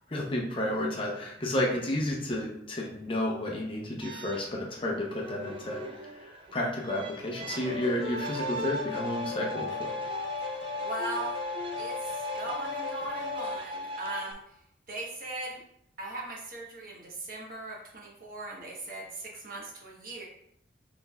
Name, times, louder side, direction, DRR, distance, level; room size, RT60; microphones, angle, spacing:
voice 1, 0.1-9.9, left 1 dB, 30° left, -2 dB, 0.6 m, -32 dB
sound 1, 4.0-14.3, equal, 30° right, 0.4 m, -38 dB
sound 2, 7.6-13.6, left 6 dB, 65° left, 0.9 m, -38 dB
voice 2, 10.5-15.6 16.0-20.3, right 2 dB, 45° right, -3 dB, 1.1 m, -39 dB
6.0 x 3.4 x 2.3 m, 0.75 s
head